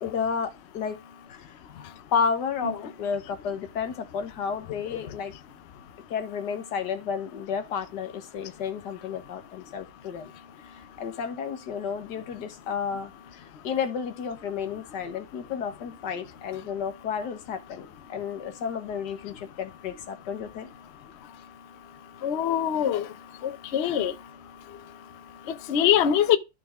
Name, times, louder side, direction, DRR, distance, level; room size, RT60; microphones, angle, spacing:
voice 1, 0.0-1.0 1.3-5.3 6.1-10.3 10.6-20.7 23.8-24.0, left 6 dB, 90° left, 1.7 m, -32 dB
voice 2, 22.2-23.1 23.4-24.1 25.7-26.4, left 9 dB, 55° left, 0.8 m, -23 dB
12.0 x 4.2 x 3.5 m
omnidirectional pair, 1.7 m